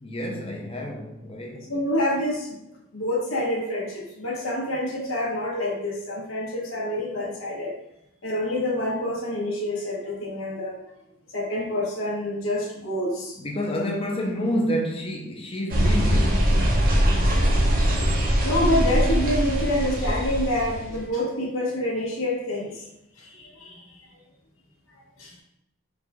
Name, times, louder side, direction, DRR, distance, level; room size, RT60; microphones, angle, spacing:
voice 1, 0.0-1.7 13.4-16.6, equal, 25° left, 0.7 m, -29 dB
voice 2, 1.7-2.6 2.9-7.7 8.2-10.8 11.3-13.4 18.4-22.9 23.2-24.0 25.2-25.4, left 1 dB, 75° left, 1.3 m, -27 dB
sound 1, 15.7-21.0, equal, 45° right, 0.7 m, -22 dB
4.7 x 2.5 x 3.6 m
head